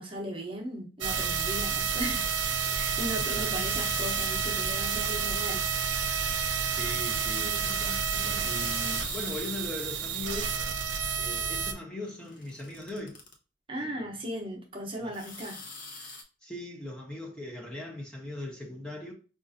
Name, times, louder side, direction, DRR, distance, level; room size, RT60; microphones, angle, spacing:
voice 1, 0.0-2.3 2.7-6.0 13.7-15.6, equal, 30° right, 0.8 m, -37 dB
sound 1, 1.0-11.7, right 6 dB, 75° right, 0.6 m, -30 dB
voice 2, 3.1-3.7 6.7-10.6 11.2-13.2 13.8-14.3 15.0-15.1 16.4-19.1, left 2 dB, 5° left, 0.6 m, -40 dB
sound 2, 3.6-4.7 5.9-7.0 8.3-9.7 12.0-13.3 15.1-16.2, left 3 dB, 50° left, 0.7 m, -43 dB
5.1 x 2.4 x 2.5 m
head